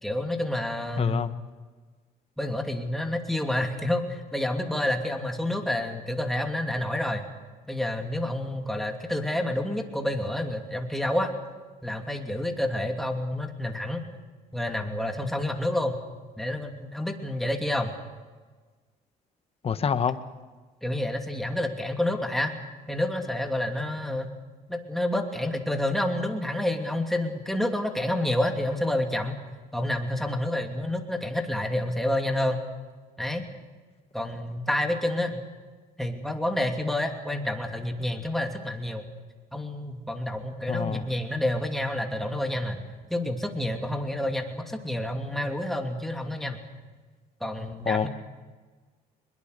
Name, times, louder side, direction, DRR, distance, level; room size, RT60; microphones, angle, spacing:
voice 1, 0.0-1.2 2.4-7.3 7.7-11.3 11.8-14.1 14.5-16.0 16.4-17.9 20.8-22.5 22.9-24.3 24.7-29.3 29.7-32.6 33.2-33.5 34.1-35.4 36.0-39.0 39.5-42.8 43.1-46.6 47.4-48.1, left 1 dB, ahead, 3 dB, 2.8 m, -29 dB
voice 2, 1.0-1.3 19.6-20.2 40.7-41.1 47.8-48.1, left 7 dB, 35° left, 11 dB, 1.2 m, -26 dB
22.5 x 22.0 x 6.7 m, 1.4 s
cardioid pair, 110°, 17 cm